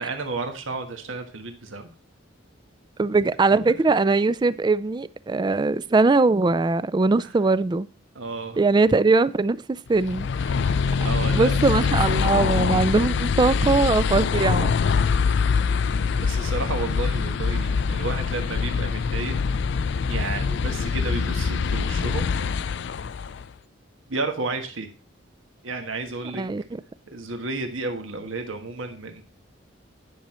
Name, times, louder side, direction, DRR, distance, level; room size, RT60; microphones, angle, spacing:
voice 1, 0.0-1.9 3.5-3.6 7.2-7.3 8.1-8.6 10.4-11.9 16.2-19.4 20.0-22.3 24.1-24.9 25.6-26.4 27.1-29.2, right 3 dB, 85° right, 1.4 m, -32 dB
voice 2, 3.0-7.9 8.6-10.3 11.3-14.7 26.4-26.6, right 3 dB, 20° right, 0.3 m, -21 dB
sound 1, 10.0-23.5, left 5 dB, 60° left, 0.4 m, -24 dB
10.0 x 6.3 x 4.3 m
head